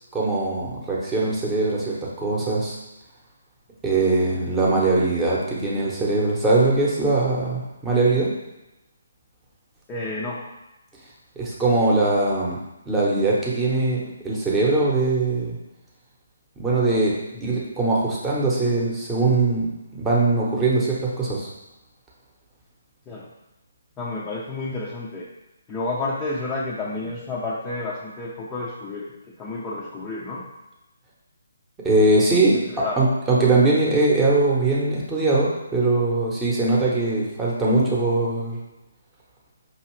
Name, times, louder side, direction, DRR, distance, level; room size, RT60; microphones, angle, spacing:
voice 1, 0.1-2.8 3.8-8.3 11.4-12.6 12.9-15.6 16.6-19.7 19.9-21.5 31.8-38.6, right 2 dB, 10° right, -5 dB, 0.9 m, -21 dB
voice 2, 9.9-10.4 17.3-17.6 23.1-23.3 24.0-25.2 25.7-29.1 29.4-30.4 32.7-33.0, left 2 dB, 15° left, -6 dB, 0.5 m, -30 dB
5.3 x 2.8 x 3.1 m, 0.96 s
figure-of-eight pair, 140°, 0 cm